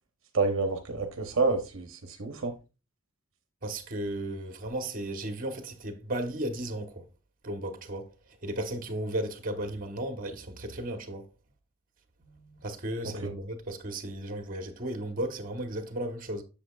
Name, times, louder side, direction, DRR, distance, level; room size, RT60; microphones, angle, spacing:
voice 1, 0.3-2.5 13.2-13.3, right 3 dB, 70° right, 0.9 m, -28 dB
voice 2, 3.6-7.0 7.4-8.1 8.4-11.2 12.2-16.4, right 1 dB, 45° right, 1.1 m, -35 dB
7.7 x 6.9 x 2.3 m
head